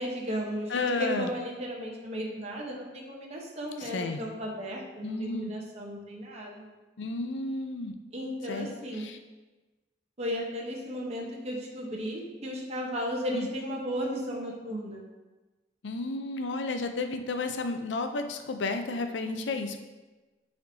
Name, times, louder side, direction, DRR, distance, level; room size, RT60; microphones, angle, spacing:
voice 1, 0.0-6.7 8.1-9.1 10.2-15.0, equal, 35° right, -2 dB, 0.9 m, -35 dB
voice 2, 0.7-1.3 3.8-4.2 5.0-5.5 7.0-7.9 8.5-8.7 9.0-9.1 13.3-13.5 15.8-19.8, left 3 dB, 85° left, 7 dB, 0.5 m, -32 dB
9.3 x 4.3 x 2.7 m, 1.2 s
head